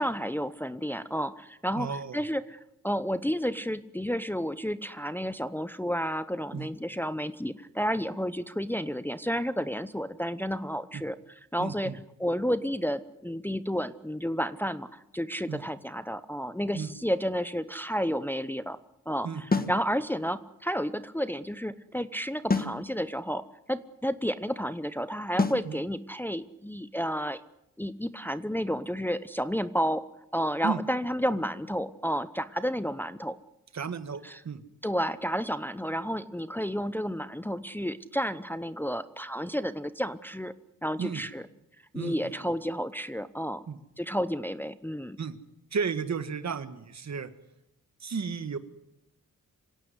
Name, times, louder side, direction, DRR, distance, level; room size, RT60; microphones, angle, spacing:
voice 1, 0.0-11.2 11.5-11.9 12.2-18.8 19.1-27.4 27.8-30.0 30.3-33.4 34.2-34.4 34.8-40.5 40.8-41.5 41.9-43.6 44.0-45.2, equal, 5° left, 12 dB, 0.8 m, -31 dB
voice 2, 1.8-2.2 6.5-6.7 10.9-11.0 11.6-12.0 15.5-15.6 16.7-16.9 19.2-19.7 25.7-25.8 30.6-30.8 33.7-34.6 41.0-41.2 41.9-42.5 43.7-43.8 45.2-45.4 45.7-47.3 48.0-48.6, right 5 dB, 55° right, 11 dB, 1.7 m, -33 dB
sound 1, 19.5-19.8 22.5-22.8 25.4-25.7, left 3 dB, 30° left, 1.7 m, -26 dB
26.0 x 16.5 x 9.8 m, 0.82 s
wide cardioid pair, 125°, 32 cm